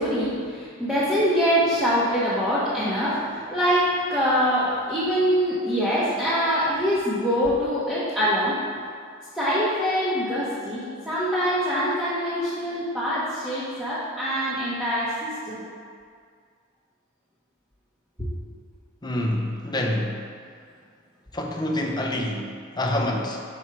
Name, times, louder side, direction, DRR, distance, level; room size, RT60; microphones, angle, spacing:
voice 1, 0.0-8.6 9.3-15.6, equal, 5° right, -11 dB, 1.0 m, -24 dB
voice 2, 19.0-20.2 21.3-23.4, left 1 dB, 20° left, 1 dB, 0.6 m, -27 dB
6.0 x 4.4 x 4.5 m, 2.1 s
head